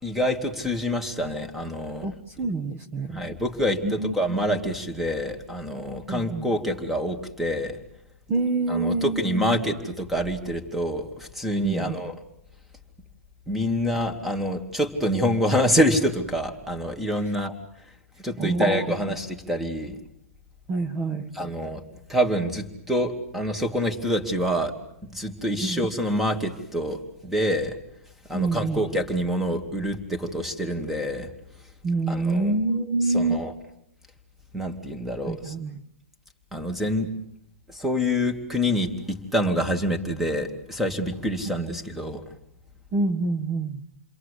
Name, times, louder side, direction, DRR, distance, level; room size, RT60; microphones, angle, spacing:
voice 1, 0.0-2.1 3.1-7.8 8.7-12.2 13.5-17.5 18.2-20.0 21.3-21.8 22.1-24.8 25.1-27.8 28.3-31.3 32.1-32.6 33.0-33.5 34.5-35.5 36.5-37.1 37.7-42.2, equal, 5° right, 6 dB, 2.6 m, -26 dB
voice 2, 2.0-3.2 3.8-4.1 6.1-6.5 8.3-9.6 11.6-11.9 18.4-18.8 20.7-21.3 25.6-25.8 28.3-28.8 31.8-33.4 35.3-35.8 42.9-43.8, right 3 dB, 25° right, 6 dB, 1.7 m, -26 dB
29.5 x 22.5 x 8.5 m, 0.77 s
hypercardioid pair, 150°, 8 cm